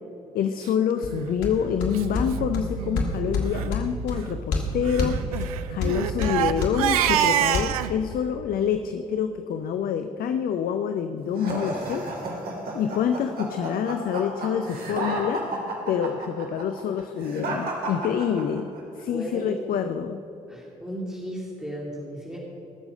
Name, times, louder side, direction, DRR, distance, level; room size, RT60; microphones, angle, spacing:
voice 1, 0.3-12.1 12.7-15.5 15.9-18.7 19.0-20.2, left 8 dB, 55° left, 8 dB, 0.6 m, -27 dB
sound 1, 1.0-7.6, left 2 dB, 70° left, 1.7 m, -29 dB
Crying sobbing, 1.0-1.3 1.9-2.0 2.3-2.4 2.8-3.0 3.4-3.7 4.8-7.9, right 11 dB, 80° right, 0.4 m, -26 dB
sound 2, 11.4-18.8, right 2 dB, 55° right, 2.6 m, -32 dB
voice 2, 19.1-19.7 20.5-22.4, equal, 5° right, -4 dB, 2.7 m, -35 dB
20.0 x 7.0 x 5.5 m, 3.0 s
hypercardioid pair, 45°, 18 cm